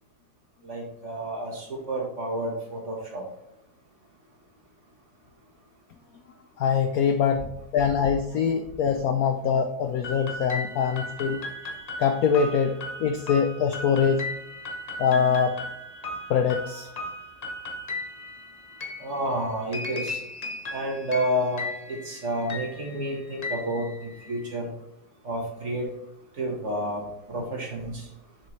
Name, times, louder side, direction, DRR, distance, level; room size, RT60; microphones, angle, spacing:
voice 1, 0.6-3.2 19.0-20.2 20.7-23.9 24.3-24.7 25.2-25.9 26.4-28.0, equal, 40° right, -1 dB, 1.7 m, -30 dB
voice 2, 6.6-11.4 12.0-14.2 15.0-15.5 16.3-16.9, left 7 dB, 75° left, 6 dB, 0.8 m, -23 dB
sound 1, 10.0-24.5, left 2 dB, 60° left, 0.4 m, -37 dB
6.7 x 6.6 x 3.2 m, 0.89 s
omnidirectional pair, 2.2 m